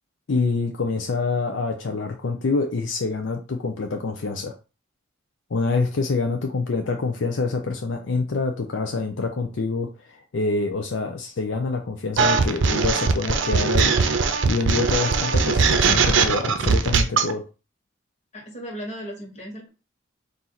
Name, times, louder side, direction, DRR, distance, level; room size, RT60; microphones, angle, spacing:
voice 1, 0.3-4.5 5.5-13.9 14.5-17.4, left 3 dB, 70° left, 4 dB, 0.5 m, -26 dB
sound 1, 12.2-17.3, right 5 dB, 70° right, 0.6 m, -20 dB
voice 2, 18.3-19.7, equal, 35° left, 0 dB, 1.4 m, -36 dB
4.3 x 2.6 x 3.9 m, 0.31 s
head